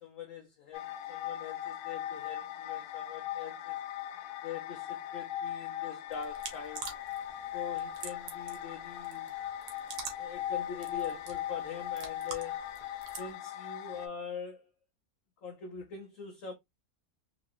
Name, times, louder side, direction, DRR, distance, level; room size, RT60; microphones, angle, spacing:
voice 1, 0.0-3.8 4.4-6.9 7.5-9.3 10.2-12.8 13.2-14.7 15.4-16.5, left 7 dB, 60° left, 1.0 m, -43 dB
sound 1, 0.7-14.1, left 11 dB, 85° left, 1.1 m, -39 dB
sound 2, 6.1-13.3, right 5 dB, 85° right, 1.5 m, -47 dB
4.0 x 2.8 x 2.5 m
omnidirectional pair, 1.7 m